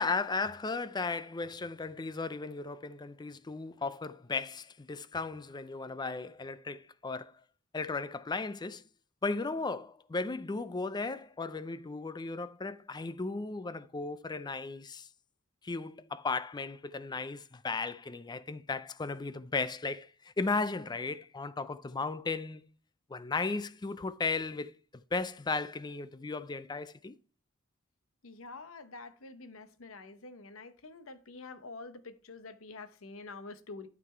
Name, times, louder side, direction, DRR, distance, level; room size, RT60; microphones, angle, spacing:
voice 1, 0.0-7.3 7.7-8.8 9.2-15.1 15.6-22.7 23.1-27.2, left 3 dB, 20° left, 0.4 m, -35 dB
voice 2, 28.2-33.9, left 3 dB, 75° left, 0.9 m, -47 dB
12.0 x 4.1 x 4.4 m
head